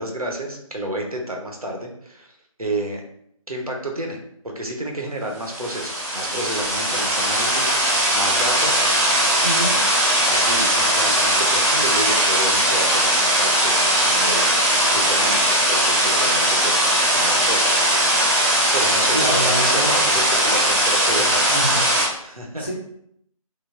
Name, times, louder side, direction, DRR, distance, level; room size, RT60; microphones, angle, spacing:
voice 1, 0.0-3.0 3.5-4.2 4.4-9.0 9.4-9.7 10.3-13.7 14.0-14.6 14.9-17.9 18.7-21.4 22.2-22.7, right 1 dB, 85° right, 1 dB, 0.7 m, -30 dB
sound 1, 5.4-22.1, right 1 dB, 25° right, 0.6 m, -19 dB
voice 2, 19.1-20.0 21.5-21.8 22.3-22.7, right 1 dB, 20° left, -6 dB, 0.3 m, -27 dB
3.1 x 2.0 x 2.3 m, 0.71 s
figure-of-eight pair, 155°, 18 cm